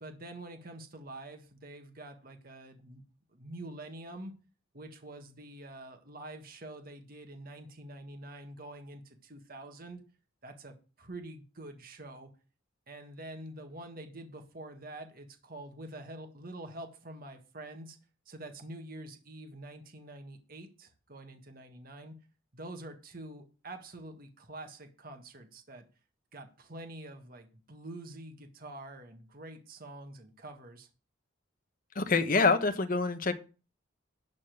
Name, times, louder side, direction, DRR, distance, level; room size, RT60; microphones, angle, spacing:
voice 1, 0.0-3.0 3.3-4.3 4.7-10.0 10.4-12.3 12.9-18.0 18.3-22.1 22.5-25.8 26.3-30.9, right 1 dB, 45° right, 1.7 m, -46 dB
voice 2, 31.9-33.3, left 4 dB, 45° left, 1.1 m, -26 dB
12.0 x 4.2 x 7.8 m
head